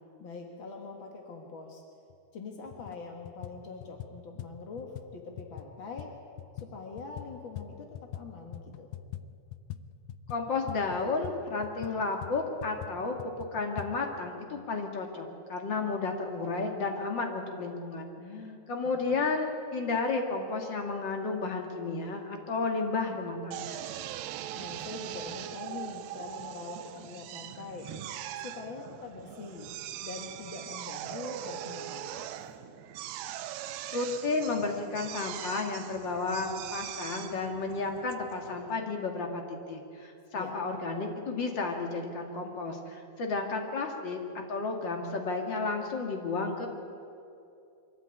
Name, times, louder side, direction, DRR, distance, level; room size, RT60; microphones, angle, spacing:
voice 1, 0.2-1.8 2.3-6.1 6.5-8.9 18.2-18.6 18.9-19.2 24.5-27.9 28.3-29.8 30.0-32.5 40.3-40.7, left 4 dB, 60° left, 2 dB, 1.2 m, -43 dB
sound 1, 2.1-2.2 2.7-3.0 3.2-8.3 8.5-13.9, left 11 dB, 90° left, 1.9 m, -43 dB
voice 2, 10.3-13.1 13.5-18.1 18.7-23.9 33.9-44.2 44.5-46.7, left 3 dB, 40° left, 3 dB, 1.8 m, -32 dB
Drill, 23.5-38.8, right 12 dB, 85° right, 2.8 m, -41 dB
23.0 x 14.5 x 9.1 m, 2.5 s
omnidirectional pair, 4.7 m